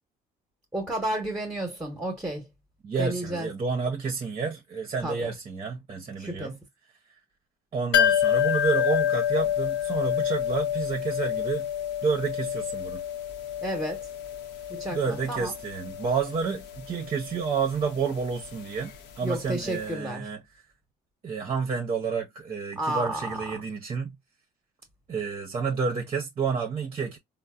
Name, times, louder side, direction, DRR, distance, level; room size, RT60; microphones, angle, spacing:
voice 1, 0.7-2.5 3.0-3.5 5.0-5.3 6.2-6.6 13.6-14.1 14.7-15.6 19.2-20.3 22.8-23.5, right 1 dB, 10° right, 0.9 m, -32 dB
voice 2, 2.8-6.6 7.7-11.7 12.0-13.0 14.9-20.4 21.2-24.2 25.1-27.2, right 5 dB, 35° right, 0.6 m, -30 dB
sound 1, 7.9-19.5 19.8-19.9, left 10 dB, 85° left, 0.7 m, -28 dB
3.9 x 2.0 x 2.3 m
cardioid pair, 110°, 17 cm